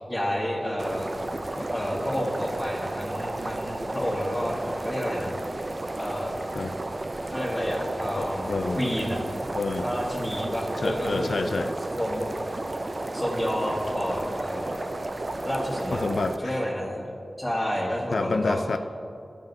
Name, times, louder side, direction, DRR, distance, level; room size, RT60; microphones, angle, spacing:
voice 1, 0.1-1.1 1.6-5.3 6.0-6.3 7.3-9.2 9.8-11.3 12.0-12.2 13.1-14.7 15.4-16.0 16.4-17.0 17.4-18.6, equal, 15° left, -7 dB, 1.3 m, -30 dB
sound 1, 0.8-16.4, right 2 dB, 40° right, 0.4 m, -33 dB
voice 2, 8.2-8.8 9.6-9.9 10.8-11.7 15.9-16.6 18.1-18.8, left 3 dB, 75° left, 8 dB, 0.4 m, -28 dB
12.5 x 5.6 x 2.6 m, 2.5 s
wide cardioid pair, 80°, 0 cm